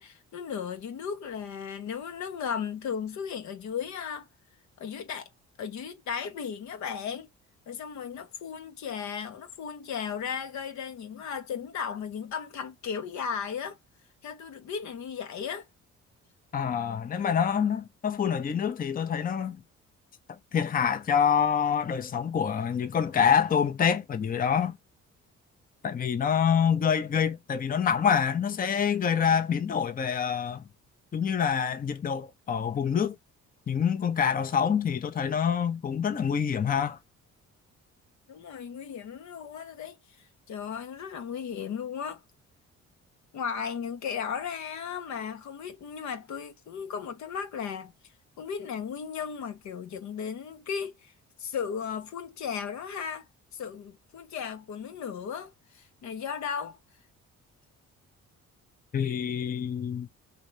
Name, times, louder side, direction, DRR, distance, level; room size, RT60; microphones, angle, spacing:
voice 1, 0.0-4.3 4.8-5.3 5.6-7.3 7.7-13.8 14.2-15.7 38.3-40.0 40.5-42.2 43.3-47.9 48.4-51.1 51.4-53.3 53.5-56.8, left 7 dB, 70° left, 0.8 m, -35 dB
voice 2, 16.5-19.6 20.3-24.8 25.8-30.6 31.1-33.2 33.7-37.0 58.9-60.1, left 7 dB, 30° left, 0.6 m, -26 dB
2.9 x 2.7 x 3.1 m
cardioid pair, 90°, 30 cm